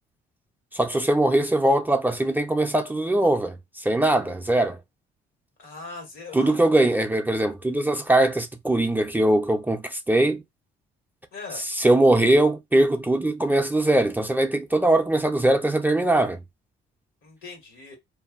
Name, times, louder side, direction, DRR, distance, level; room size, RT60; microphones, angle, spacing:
voice 1, 0.7-4.8 6.3-10.4 11.8-16.4, right 1 dB, 10° right, 0.4 m, -21 dB
voice 2, 5.6-6.6 6.8-7.0 11.3-11.6 17.2-18.0, left 4 dB, 85° left, 1.4 m, -40 dB
2.5 x 2.5 x 2.4 m
cardioid pair, 90°, 20 cm